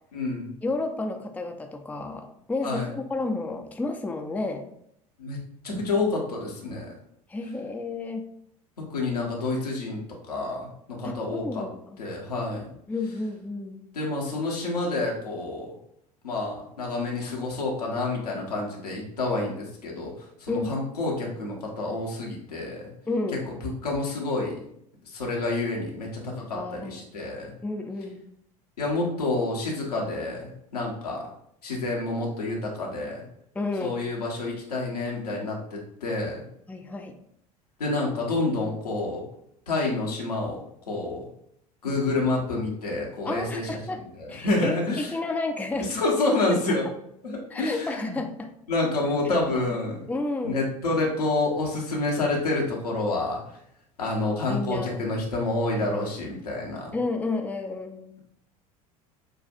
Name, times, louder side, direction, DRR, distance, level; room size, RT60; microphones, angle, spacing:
voice 1, 0.1-0.5 2.6-2.9 5.2-5.4 5.6-6.9 8.9-10.0 10.3-11.6 12.0-12.7 13.9-15.8 16.2-22.9 23.5-24.5 25.0-27.5 28.8-31.2 31.6-33.3 33.8-36.5 37.8-39.2 39.7-41.3 41.8-45.1 45.8-46.9 47.2-48.2 48.7-50.1 50.4-53.6 54.0-57.0, left 2 dB, 85° left, -2 dB, 1.2 m, -28 dB
voice 2, 0.6-4.7 7.3-8.3 11.0-12.0 12.9-13.8 20.5-20.7 23.1-23.4 26.5-27.0 27.6-28.2 33.6-33.9 36.7-37.1 41.9-42.0 43.3-44.0 44.3-45.9 47.5-48.5 50.1-50.6 54.5-55.0 56.9-58.1, left 3 dB, 10° left, 4 dB, 0.5 m, -31 dB
6.5 x 2.4 x 2.6 m, 0.73 s
hypercardioid pair, 75°, 19 cm